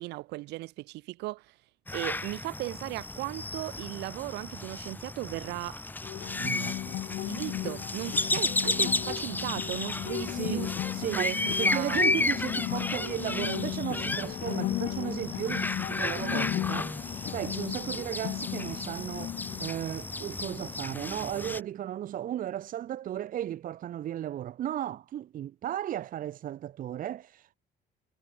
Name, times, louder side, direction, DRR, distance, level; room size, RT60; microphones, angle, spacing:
voice 1, 0.0-1.5 1.9-5.8 7.3-10.7 11.2-11.4 11.7-12.0, right 20 dB, 90° right, 2.3 m, -36 dB
sound 1, 1.9-21.6, left 2 dB, 10° left, 1.0 m, -33 dB
sound 2, 6.0-21.0, left 15 dB, 70° left, 1.1 m, -36 dB
voice 2, 6.4-7.0 10.3-27.5, right 11 dB, 55° right, 0.9 m, -35 dB
cardioid pair, 110°, 17 cm